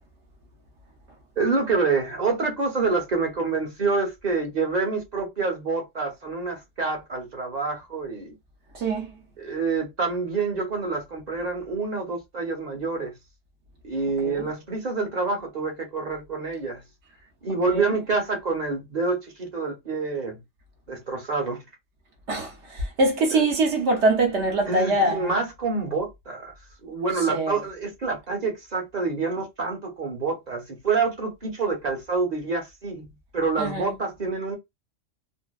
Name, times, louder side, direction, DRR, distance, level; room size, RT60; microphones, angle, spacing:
voice 1, 1.4-8.3 9.4-13.1 13.8-16.8 17.4-20.4 20.9-21.6 23.3-23.4 24.7-26.5 26.8-34.5, right 4 dB, 40° right, 0.9 m, -27 dB
voice 2, 8.7-9.2 14.2-14.5 17.7-17.9 22.3-25.3 27.3-27.6 33.6-34.0, right 2 dB, 70° right, 1.0 m, -24 dB
2.7 x 2.4 x 2.2 m
omnidirectional pair, 1.3 m